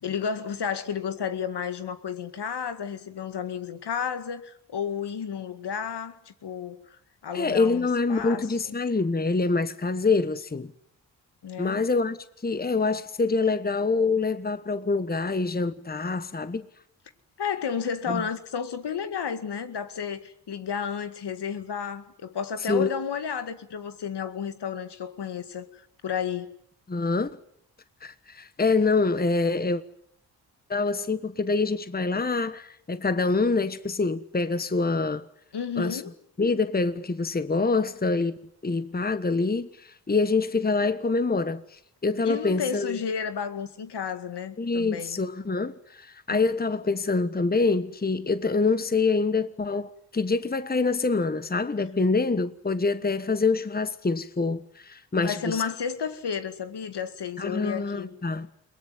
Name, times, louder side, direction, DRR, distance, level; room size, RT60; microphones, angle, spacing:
voice 1, 0.0-8.8 11.4-11.9 17.4-26.5 35.5-36.1 42.2-45.2 46.3-46.4 55.2-58.1, left 7 dB, 65° left, 2.1 m, -32 dB
voice 2, 7.3-10.7 11.6-12.2 12.4-16.7 18.1-18.2 22.6-22.9 26.9-27.4 28.0-29.8 30.7-35.2 35.8-36.0 36.4-43.0 44.6-55.6 57.4-58.5, left 3 dB, 20° left, 1.2 m, -26 dB
22.0 x 19.0 x 9.5 m
supercardioid pair, 40°, 44 cm